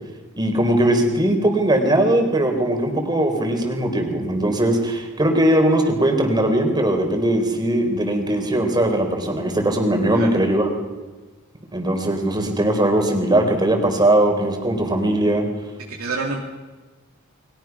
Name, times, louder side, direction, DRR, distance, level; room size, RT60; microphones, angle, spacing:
voice 1, 0.4-10.7 11.7-15.5, right 1 dB, 20° right, 4 dB, 4.1 m, -19 dB
voice 2, 15.9-16.5, right 3 dB, 80° right, -1 dB, 2.7 m, -28 dB
29.5 x 22.5 x 6.1 m, 1.2 s
head